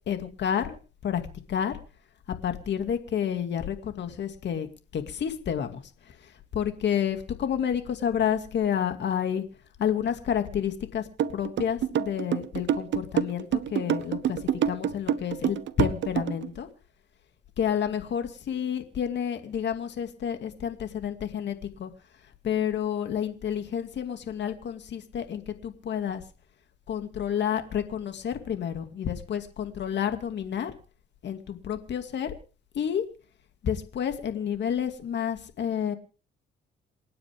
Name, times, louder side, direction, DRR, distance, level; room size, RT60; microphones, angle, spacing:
voice 1, 0.1-0.8 1.0-1.2 1.5-1.8 2.4-4.7 4.9-9.4 9.8-16.7 17.6-21.9 22.4-26.2 26.9-30.7 31.2-32.4 32.7-33.0 33.6-35.9, left 8 dB, 65° left, 7 dB, 2.4 m, -30 dB
sound 1, 11.2-16.5, right 9 dB, 70° right, 1.0 m, -26 dB
28.0 x 9.6 x 3.6 m, 0.37 s
cardioid pair, 90°, 20 cm